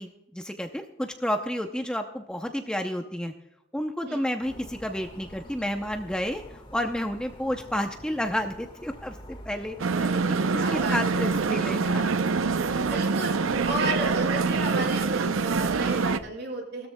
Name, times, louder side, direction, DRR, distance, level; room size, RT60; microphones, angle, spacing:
voice 1, 0.0-3.3 3.7-12.1, equal, 5° left, 5 dB, 0.6 m, -31 dB
sound 1, 4.4-16.3, equal, 25° left, 1.5 m, -46 dB
sound 2, 9.8-16.2, right 4 dB, 75° right, 0.6 m, -25 dB
voice 2, 10.5-11.2 12.8-16.9, right 1 dB, 55° right, 0 dB, 4.2 m, -33 dB
19.0 x 13.5 x 2.2 m, 0.89 s
head